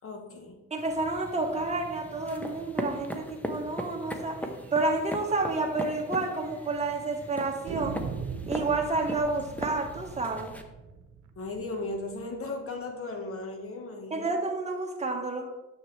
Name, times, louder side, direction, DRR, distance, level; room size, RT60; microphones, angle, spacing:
voice 1, 0.0-0.6 11.3-14.4, left 2 dB, 45° left, 4 dB, 1.5 m, -36 dB
voice 2, 0.7-4.4 4.7-8.0 8.5-10.5 14.1-15.5, right 3 dB, 20° right, 1 dB, 1.5 m, -30 dB
sound 1, 0.8-10.6, left 1 dB, 5° left, 0.9 m, -39 dB
sound 2, 5.3-5.4 5.7-5.8 6.4-7.0 7.7-12.5, right 6 dB, 70° right, 1.0 m, -40 dB
9.3 x 7.2 x 3.3 m, 1.1 s
cardioid pair, 90°, 30 cm